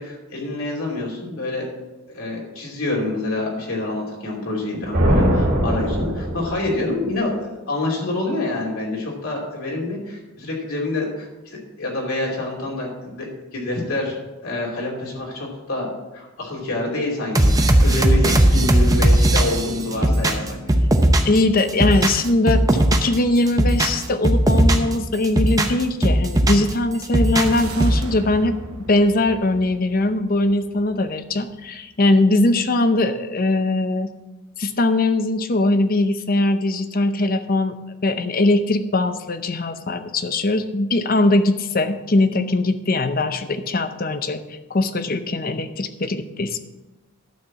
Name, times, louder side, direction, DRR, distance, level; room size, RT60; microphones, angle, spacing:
voice 1, 0.0-1.7 2.1-14.1 14.4-15.9 16.1-20.4, left 2 dB, 75° left, -2 dB, 2.8 m, -27 dB
sound 1, 4.9-6.9, equal, 45° right, 2.4 m, -20 dB
sound 2, 17.3-21.4 21.7-23.2 23.5-24.9 25.2-26.7 27.0-28.0, right 1 dB, 15° right, 0.7 m, -17 dB
voice 2, 21.2-28.6 28.9-34.1 34.6-37.7 38.0-44.4 44.7-46.6, left 2 dB, 40° left, 10 dB, 0.7 m, -20 dB
sound 3, 27.5-31.9, right 2 dB, 80° right, 1.0 m, -37 dB
11.5 x 4.4 x 7.3 m, 1.1 s
head